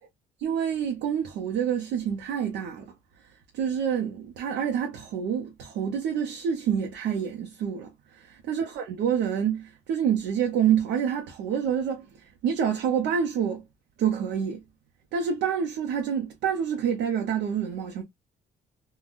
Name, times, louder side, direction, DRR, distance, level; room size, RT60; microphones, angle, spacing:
voice 1, 0.4-2.9 3.3-13.6 14.0-14.6 15.1-18.0, right 8 dB, 85° right, 0.7 m, -27 dB
3.7 x 2.2 x 2.4 m
cardioid pair, 95°, 18 cm